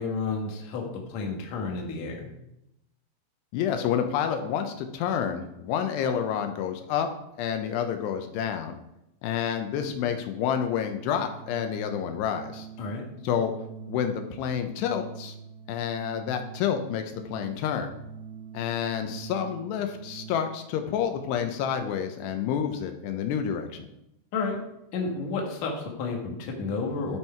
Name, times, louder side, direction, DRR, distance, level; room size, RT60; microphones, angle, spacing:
voice 1, 0.0-2.3 12.8-13.0 24.3-24.6 24.9-27.2, left 4 dB, 55° left, 1 dB, 2.2 m, -31 dB
voice 2, 3.5-7.1 7.4-8.7 9.2-12.7 13.2-13.5 13.9-15.4 15.7-17.9 18.5-23.9, left 8 dB, 85° left, 6 dB, 2.8 m, -29 dB
Organ, 10.4-20.8, right 6 dB, 85° right, 2.8 m, -44 dB
13.0 x 4.6 x 4.4 m, 0.84 s
omnidirectional pair, 4.8 m